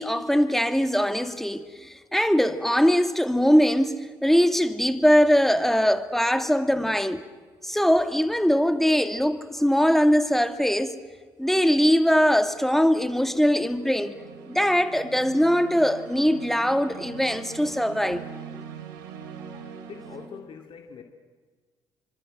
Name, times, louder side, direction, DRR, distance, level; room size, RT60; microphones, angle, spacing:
voice 1, 0.0-7.3 7.6-11.0 11.4-14.2 14.5-18.2, equal, 5° left, 2.4 m, -21 dB
sound 1, 6.4-6.5 12.4-20.3, right 7 dB, 80° right, 3.1 m, -43 dB
voice 2, 19.9-21.0, left 6 dB, 55° left, 2.8 m, -42 dB
29.5 x 25.5 x 7.8 m
hypercardioid pair, 50°, 11 cm